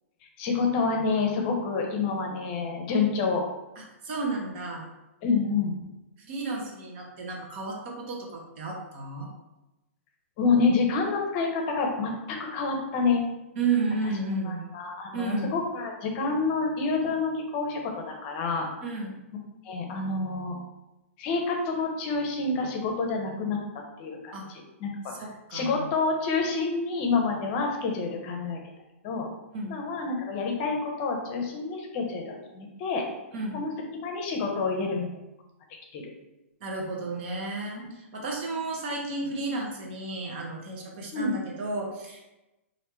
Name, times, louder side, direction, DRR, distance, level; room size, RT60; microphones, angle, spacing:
voice 1, 0.4-3.5 5.2-5.7 10.4-13.2 14.5-18.7 19.6-20.6 21.2-23.6 24.0-25.1 25.5-28.6 29.0-29.3 29.7-33.1 33.5-35.1 35.9-36.1 41.1-41.3, left 4 dB, 40° left, 2 dB, 0.7 m, -28 dB
voice 2, 3.8-4.9 6.2-9.3 13.6-14.7 15.1-15.5 18.8-19.2 24.3-24.5 25.1-25.8 29.5-29.8 33.3-33.6 36.6-42.2, right 3 dB, 50° right, -1 dB, 0.9 m, -32 dB
3.2 x 2.6 x 3.1 m, 0.97 s
hypercardioid pair, 135°, 8 cm